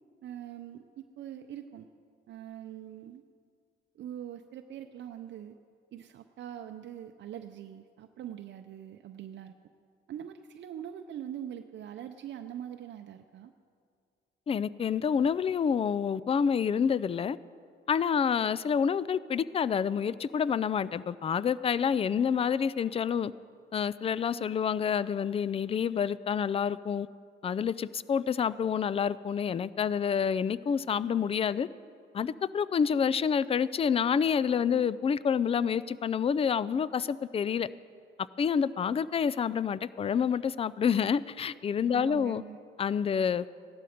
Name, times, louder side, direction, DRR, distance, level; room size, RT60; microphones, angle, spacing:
voice 1, 0.2-1.9 2.3-3.2 4.0-5.6 5.9-9.5 10.1-13.5 41.9-42.6, right 10 dB, 65° right, 6 dB, 0.6 m, -43 dB
voice 2, 14.5-17.4 17.9-23.3 23.7-27.1 27.4-31.7 32.1-37.7 38.4-42.4 42.8-43.4, left 7 dB, 30° left, 18 dB, 0.4 m, -28 dB
16.0 x 12.0 x 5.1 m, 2.2 s
cardioid pair, 90°, 20 cm